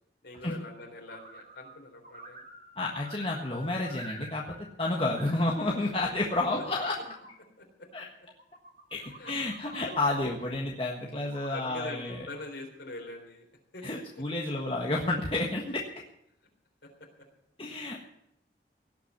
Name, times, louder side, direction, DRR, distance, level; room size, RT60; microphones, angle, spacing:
voice 1, 0.2-2.4 6.0-6.6 7.6-7.7 9.0-9.3 9.9-10.0 11.5-13.5 13.7-13.8, left 2 dB, 80° left, 1 dB, 3.7 m, -43 dB
sound 1, 1.1-1.8 2.0-4.7 4.9-5.8 6.3-7.3 8.3-10.1 11.2-12.4, right 2 dB, 45° right, 2.2 m, -49 dB
voice 2, 2.8-6.9 7.9-8.1 8.9-12.3 13.8-15.8 17.6-18.0, left 2 dB, 30° left, -2 dB, 1.5 m, -30 dB
18.0 x 6.0 x 9.6 m, 0.77 s
head